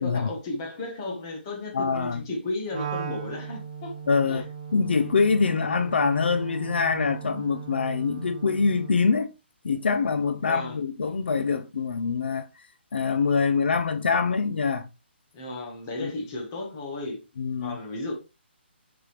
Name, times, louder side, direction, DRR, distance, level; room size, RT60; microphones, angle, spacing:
voice 1, 0.0-3.9 4.3-4.5 4.8-5.0 10.4-10.8 15.3-17.2 17.6-18.1, left 2 dB, 20° left, 1.3 m, -34 dB
voice 2, 1.7-2.2 4.1-4.5 4.7-9.3 9.6-12.4 12.9-14.9 16.0-16.1 17.4-17.8, left 5 dB, 65° left, 0.6 m, -24 dB
Wind instrument woodwind instrument, 2.7-9.1, right 7 dB, 30° right, 1.0 m, -38 dB
6.7 x 5.5 x 3.2 m
hypercardioid pair, 180°, 6 cm